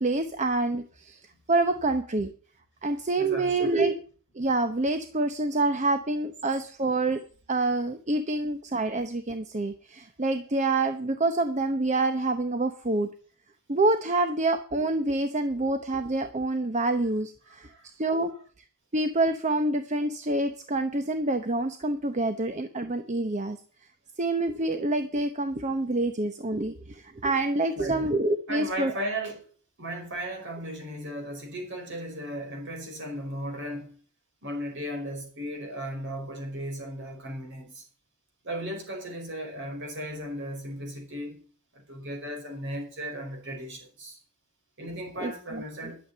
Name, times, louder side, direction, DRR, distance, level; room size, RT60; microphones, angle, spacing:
voice 1, 0.0-1.2 1.5-2.3 2.8-3.9 4.3-7.2 7.5-13.1 13.7-17.7 18.0-18.3 18.9-23.6 24.2-28.9 45.2-45.9, right 2 dB, 30° right, 0.8 m, -27 dB
voice 2, 3.2-3.8 17.6-18.3 27.8-28.0 28.5-29.4 29.8-34.0 34.4-37.8 38.4-41.4 41.7-44.2 44.8-46.0, right 1 dB, 55° right, 5.0 m, -36 dB
12.0 x 7.3 x 9.5 m
head